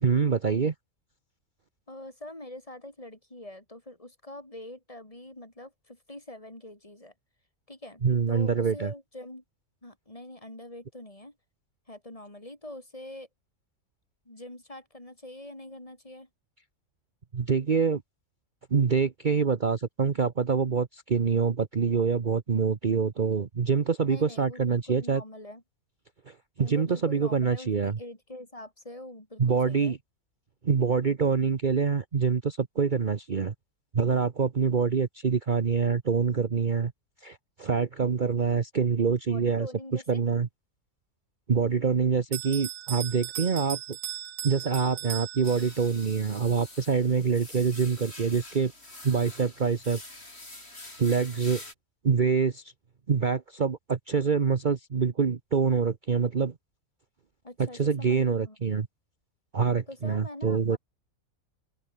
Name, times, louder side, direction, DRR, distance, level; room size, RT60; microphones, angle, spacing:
voice 1, 0.0-0.7 8.0-8.9 17.3-18.0 18.7-25.2 26.3-28.0 29.4-30.0 30.6-33.5 33.9-36.9 37.2-40.5 41.5-43.8 44.4-48.7 49.0-50.0 51.0-51.6 52.0-52.6 53.1-56.5 57.6-58.9 59.5-60.8, right 5 dB, 40° right, 1.1 m, -25 dB
voice 2, 1.9-7.1 7.7-8.0 8.3-9.4 9.8-11.4 11.9-13.3 14.3-16.3 24.0-25.6 26.6-30.0 39.3-40.2 57.4-58.6 59.9-60.8, left 1 dB, 25° left, 3.7 m, -44 dB
Bell, 42.3-46.0, right 12 dB, 65° right, 0.6 m, -37 dB
sound 1, 45.4-51.7, left 2 dB, 50° left, 6.3 m, -46 dB
open air
omnidirectional pair, 1.4 m